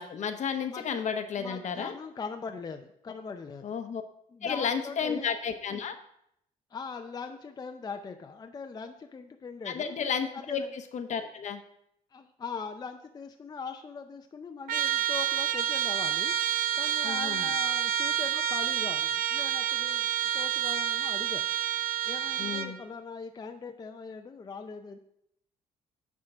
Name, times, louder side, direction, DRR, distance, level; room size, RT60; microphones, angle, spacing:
voice 1, 0.0-1.9 3.6-4.0 4.4-6.0 9.6-10.6 10.9-11.6 17.0-17.5 22.4-22.8, left 6 dB, 55° left, 8 dB, 0.9 m, -32 dB
voice 2, 0.7-1.1 1.4-3.6 4.3-5.3 6.7-10.0 10.3-10.7 12.1-16.3 16.7-21.5 22.0-25.0, left 5 dB, 30° left, 5 dB, 0.5 m, -41 dB
Trumpet, 14.7-22.8, right 10 dB, 85° right, 0.5 m, -29 dB
9.7 x 3.7 x 5.4 m, 0.74 s
cardioid pair, 105°, 14 cm